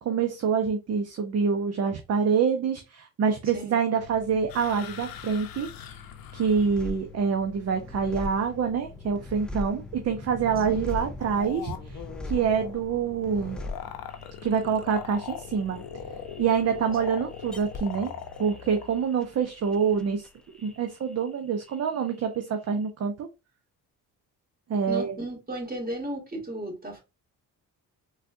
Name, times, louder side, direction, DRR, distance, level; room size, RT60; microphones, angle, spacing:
voice 1, 0.0-5.7 6.3-13.6 14.4-15.8 16.4-18.1 18.4-20.3 20.6-23.3 24.7-25.2, right 6 dB, 45° right, 0.6 m, -26 dB
sound 1, 4.0-20.3, left 7 dB, 40° left, 0.9 m, -48 dB
sound 2, 4.5-6.8 10.9-18.9, left 9 dB, 70° left, 0.7 m, -41 dB
sound 3, 6.5-21.4 21.6-22.4, left 2 dB, 5° left, 0.3 m, -41 dB
voice 2, 24.9-27.0, right 1 dB, 25° right, 2.1 m, -34 dB
4.0 x 2.3 x 2.5 m
cardioid pair, 95°, 36 cm